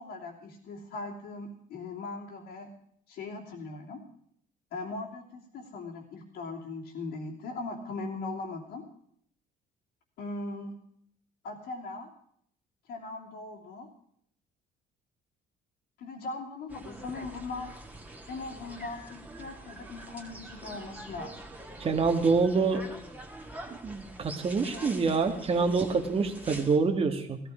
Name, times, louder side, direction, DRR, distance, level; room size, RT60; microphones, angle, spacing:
voice 1, 0.0-2.7 3.1-4.0 4.7-8.8 10.2-10.8 11.4-12.1 12.9-13.9 16.0-17.7 18.3-21.4 24.7-25.0 25.6-25.8, left 3 dB, 80° left, -5 dB, 3.1 m, -39 dB
sound 1, 16.7-26.8, right 1 dB, 10° right, 2.1 m, -45 dB
voice 2, 21.8-22.8 23.8-27.4, right 4 dB, 35° right, 4 dB, 1.6 m, -26 dB
16.0 x 14.5 x 5.0 m, 0.66 s
cardioid pair, 110°, 17 cm